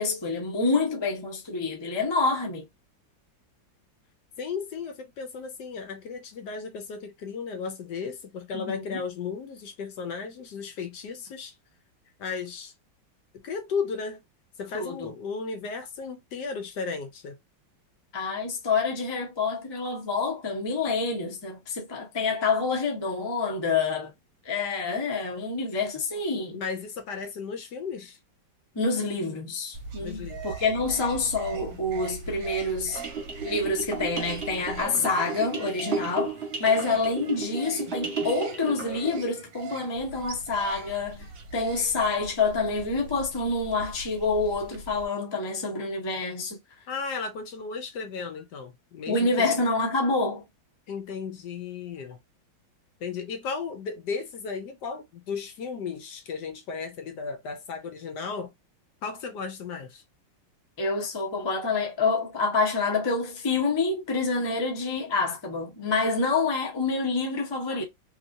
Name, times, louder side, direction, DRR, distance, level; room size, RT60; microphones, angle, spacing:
voice 1, 0.0-2.7 8.5-9.0 14.7-15.1 18.1-24.1 24.4-26.6 28.7-33.0 33.4-36.3 36.6-41.3 41.5-46.6 49.1-50.4 60.8-67.8, left 3 dB, 30° left, 0.5 m, -27 dB
voice 2, 4.4-11.5 12.2-12.7 13.3-14.2 14.6-17.4 26.5-28.2 30.0-30.4 46.9-49.5 50.9-52.2 53.0-58.5 59.0-60.0, left 5 dB, 70° left, 1.2 m, -35 dB
sound 1, 29.7-45.1, right 3 dB, 60° right, 1.1 m, -42 dB
sound 2, 32.9-39.2, right 4 dB, 40° right, 1.3 m, -34 dB
3.0 x 3.0 x 2.6 m
omnidirectional pair, 2.1 m